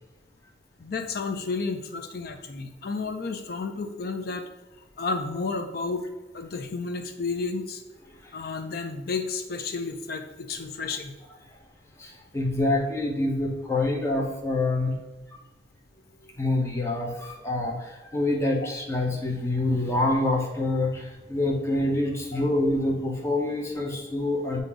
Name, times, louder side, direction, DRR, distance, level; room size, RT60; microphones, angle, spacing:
voice 1, 0.8-4.4 5.0-6.0 6.3-7.8 8.3-11.1, left 4 dB, 60° left, 6 dB, 0.5 m, -31 dB
voice 2, 12.0-14.9 16.4-24.6, left 2 dB, 15° left, -2 dB, 0.9 m, -26 dB
7.5 x 2.7 x 4.8 m, 1.1 s
head